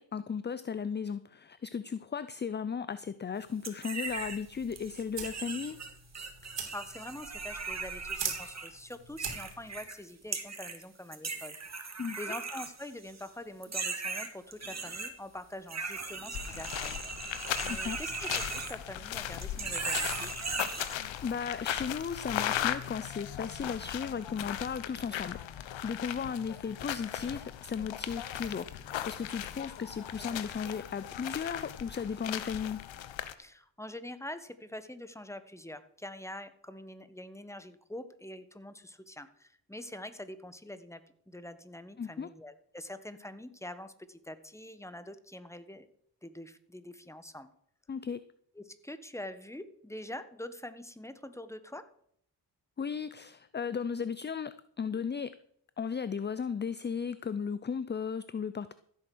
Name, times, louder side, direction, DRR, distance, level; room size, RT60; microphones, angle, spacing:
voice 1, 0.0-5.8 12.0-12.2 17.7-18.0 21.2-32.9 42.0-42.3 47.9-48.2 52.8-55.3 55.8-58.7, left 6 dB, 25° left, 15 dB, 0.5 m, -36 dB
sound 1, 3.6-4.4 4.7-10.0 10.3-10.8 11.1-13.3 13.6-15.1 15.7-19.1 19.4-20.9, right 4 dB, 35° right, 2.3 m, -38 dB
sound 2, 4.0-9.8, right 6 dB, 70° right, 3.2 m, -42 dB
voice 2, 6.7-11.9 12.2-17.0 17.6-20.3 33.4-41.0 41.3-45.9 46.2-47.5 48.5-51.8, left 1 dB, 5° left, 11 dB, 1.5 m, -45 dB
sound 3, 16.3-33.3, left 11 dB, 85° left, 1.0 m, -38 dB
15.0 x 8.4 x 6.2 m, 0.67 s
cardioid pair, 65°, 44 cm